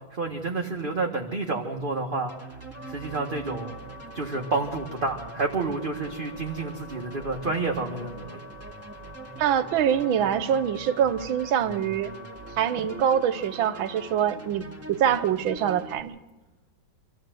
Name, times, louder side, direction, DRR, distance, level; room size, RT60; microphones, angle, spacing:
voice 1, 0.1-2.3 2.9-3.7 4.1-8.4, right 3 dB, 30° right, 1 dB, 1.5 m, -29 dB
sound 1, 2.3-16.0, right 3 dB, 5° right, 2.1 m, -43 dB
Wind instrument woodwind instrument, 2.7-14.3, left 2 dB, 30° left, 2.9 m, -46 dB
voice 2, 9.4-12.1 12.6-16.2, right 9 dB, 85° right, 13 dB, 1.7 m, -24 dB
26.0 x 15.0 x 7.8 m, 1.2 s
omnidirectional pair, 2.2 m